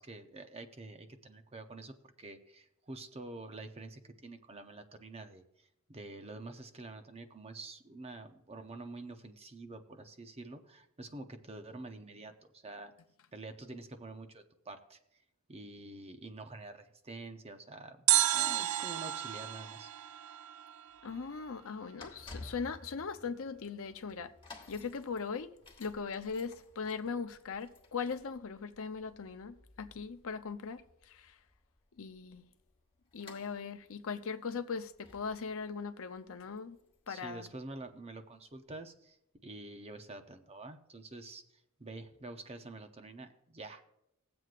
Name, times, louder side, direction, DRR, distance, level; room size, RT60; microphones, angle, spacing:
voice 1, 0.0-12.9 13.3-15.2 15.5-18.1 18.3-19.9 37.1-39.2 39.4-43.8, right 2 dB, 30° right, 0.7 m, -47 dB
sound 1, 18.1-21.2 21.4-21.5, right 13 dB, 80° right, 0.4 m, -31 dB
sound 2, 20.9-37.9 38.5-38.6, left 2 dB, 25° left, 1.4 m, -56 dB
voice 2, 21.0-24.3 24.7-25.5 25.8-31.3 32.0-32.4 33.1-36.8 37.1-37.5, left 5 dB, 65° left, 0.7 m, -39 dB
20.5 x 7.8 x 2.5 m
head